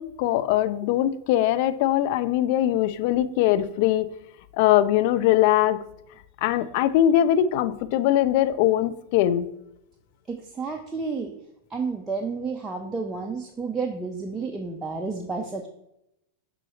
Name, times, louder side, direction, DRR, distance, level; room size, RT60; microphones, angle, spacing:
voice 1, 0.0-4.1 4.6-5.8 6.4-9.5, left 12 dB, 45° left, 12 dB, 0.4 m, -21 dB
voice 2, 10.3-11.3 11.7-15.7, right 4 dB, 15° right, 2 dB, 0.5 m, -31 dB
6.1 x 3.8 x 4.3 m, 0.82 s
figure-of-eight pair, 90°, 0 cm